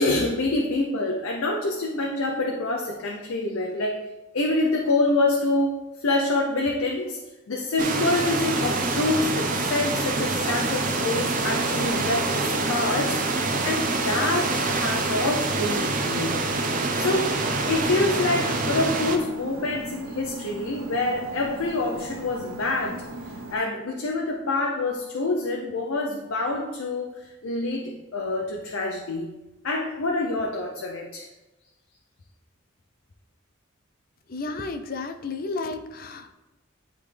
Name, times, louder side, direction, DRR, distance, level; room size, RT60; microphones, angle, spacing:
voice 1, 0.0-4.0 4.3-7.2 7.5-16.4 17.0-17.4 17.7-29.3 29.6-31.3, left 2 dB, 80° left, 1 dB, 0.7 m, -26 dB
sound 1, 7.8-19.2, right 3 dB, 40° right, 0.6 m, -26 dB
sound 2, 8.5-23.6, right 1 dB, 80° right, 0.7 m, -39 dB
voice 2, 34.3-36.3, left 3 dB, 45° left, 8 dB, 0.5 m, -32 dB
10.0 x 3.5 x 3.3 m, 1.0 s
head